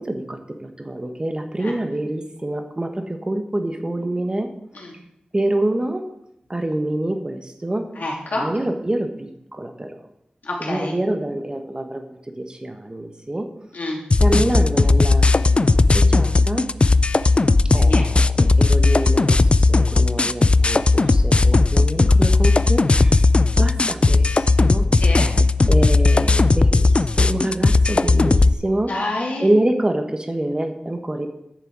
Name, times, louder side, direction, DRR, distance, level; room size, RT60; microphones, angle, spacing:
voice 1, 0.0-4.5 5.3-6.0 6.5-7.9 8.4-10.0 10.6-13.5 14.2-15.7 15.9-16.7 17.7-23.3 23.6-24.8 25.7-28.9 29.4-31.3, right 1 dB, 30° right, 6 dB, 1.2 m, -26 dB
voice 2, 7.9-8.5 10.4-10.9 13.7-14.0 17.9-18.1 24.9-25.3 28.9-29.5, left 2 dB, 75° left, -2 dB, 2.7 m, -27 dB
sound 1, 14.1-28.5, left 3 dB, 40° left, 0.3 m, -16 dB
10.0 x 6.8 x 4.8 m, 0.81 s
cardioid pair, 50°, 3 cm